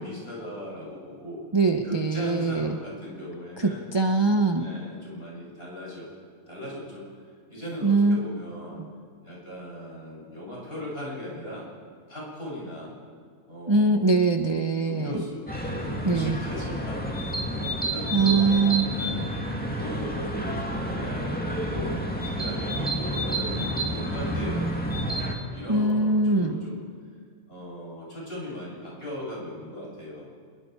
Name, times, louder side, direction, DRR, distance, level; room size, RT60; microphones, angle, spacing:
voice 1, 0.0-1.4 1.8-3.9 4.6-6.1 6.5-7.0 7.5-8.8 9.2-11.7 12.1-12.9 13.5-14.2 14.8-17.2 17.8-22.0 22.4-25.0 25.5-26.8 27.5-30.3, left 1 dB, 40° left, -5 dB, 7.3 m, -38 dB
voice 2, 1.5-2.7 3.6-4.7 7.8-8.2 13.7-15.2 16.0-16.4 18.1-18.9 25.7-26.6, right 3 dB, 25° right, 5 dB, 0.8 m, -22 dB
sound 1, 15.5-25.3, right 1 dB, 5° left, 2.1 m, -29 dB
27.0 x 21.5 x 4.7 m, 2.1 s
omnidirectional pair, 1.5 m